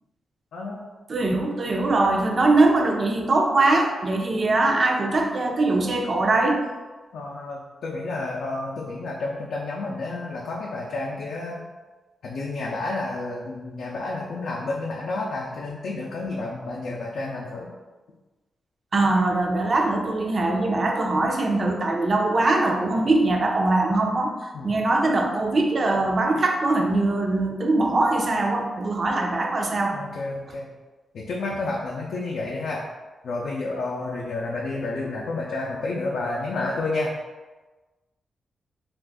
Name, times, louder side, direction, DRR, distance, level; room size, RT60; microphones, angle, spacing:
voice 1, 0.5-0.8 7.1-11.6 12.2-17.7 24.5-24.7 29.9-30.7 31.1-32.8 33.2-37.1, left 2 dB, 85° left, -4 dB, 0.4 m, -30 dB
voice 2, 1.1-6.6 18.9-24.3 24.6-29.9, right 2 dB, 45° right, 2 dB, 0.4 m, -22 dB
2.5 x 2.4 x 3.5 m, 1.2 s
cardioid pair, 85°, 0 cm